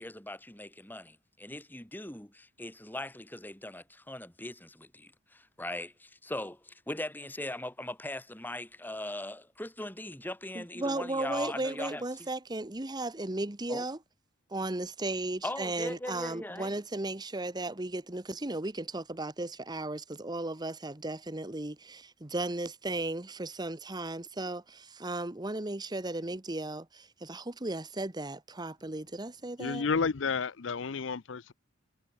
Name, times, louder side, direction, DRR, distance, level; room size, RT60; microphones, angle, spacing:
voice 1, 0.0-12.3 13.7-13.8 15.4-16.8, left 1 dB, 10° left, 2.0 m, -40 dB
voice 2, 10.5-14.0 14.5-29.9, right 2 dB, 20° right, 1.2 m, -35 dB
voice 3, 29.6-31.5, left 5 dB, 65° left, 0.6 m, -31 dB
head